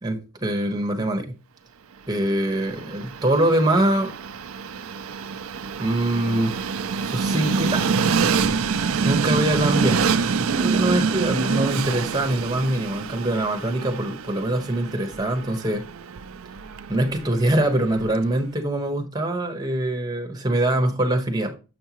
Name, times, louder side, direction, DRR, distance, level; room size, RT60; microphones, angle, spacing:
voice 1, 0.0-1.3 2.1-4.1 5.8-6.6 7.0-7.9 9.0-10.0 10.6-15.9 16.9-21.6, right 1 dB, 20° right, 1.2 m, -23 dB
Train, 2.2-18.3, right 5 dB, 75° right, 0.5 m, -26 dB
7.8 x 5.5 x 3.0 m
head